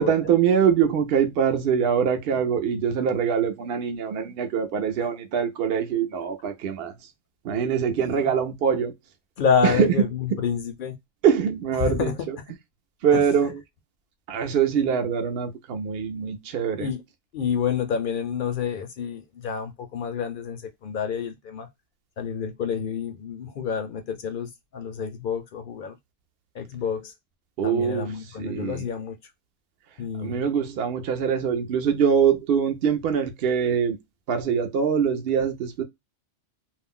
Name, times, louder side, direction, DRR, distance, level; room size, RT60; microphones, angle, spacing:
voice 1, 0.0-6.9 7.4-8.9 9.6-9.9 10.3-10.4 11.2-12.4 13.0-13.6 14.3-16.9 27.6-28.9 30.2-34.0 34.3-35.8, right 7 dB, 65° right, 0.7 m, -23 dB
voice 2, 9.4-10.9 11.8-12.1 13.1-13.5 16.8-17.0 17.3-21.7 22.2-25.9 26.5-27.1 27.6-29.2 30.0-30.5, left 7 dB, 60° left, 0.6 m, -28 dB
2.4 x 2.1 x 3.5 m
omnidirectional pair, 1.3 m